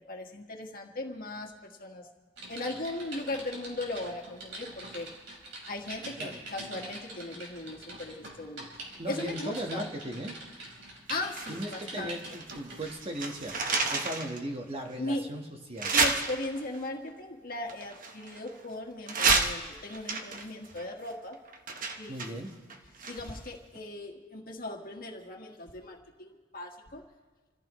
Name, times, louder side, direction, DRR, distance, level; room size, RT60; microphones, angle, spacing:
voice 1, 0.1-2.1 2.5-5.1 5.7-9.9 11.1-12.2 15.0-15.2 15.9-21.4 22.0-22.4 23.1-27.0, left 2 dB, 50° left, 2 dB, 1.7 m, -38 dB
Typing, 2.4-13.1 13.6-13.8, right 2 dB, 70° right, 4.5 m, -44 dB
voice 2, 9.0-10.4 11.5-13.6 13.9-15.9 22.1-22.5, right 1 dB, 30° right, 3 dB, 1.4 m, -37 dB
Jimmy's foley throw paper, 11.3-12.6 12.8-14.4 14.9-15.0 15.8-16.8 17.7-18.6 19.1-23.5 23.7-23.8, right 4 dB, 45° right, 1.2 m, -30 dB
27.5 x 15.0 x 3.2 m, 1.3 s
head